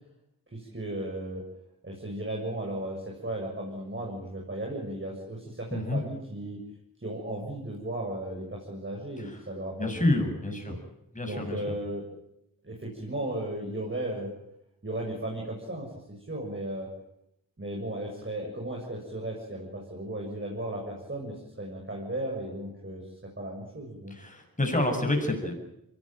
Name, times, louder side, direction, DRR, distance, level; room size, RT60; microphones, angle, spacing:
voice 1, 0.5-1.4 1.8-6.6 7.0-10.2 10.5-10.8 11.3-12.1 12.6-14.3 14.8-16.9 17.6-23.0 23.4-24.1 25.4-25.5, right 1 dB, 35° right, -1 dB, 7.2 m, -35 dB
voice 2, 9.8-10.8 11.1-11.6 24.1-25.5, left 1 dB, 20° left, 3 dB, 7.6 m, -28 dB
23.0 x 18.0 x 9.0 m, 0.82 s
cardioid pair, 50°, 36 cm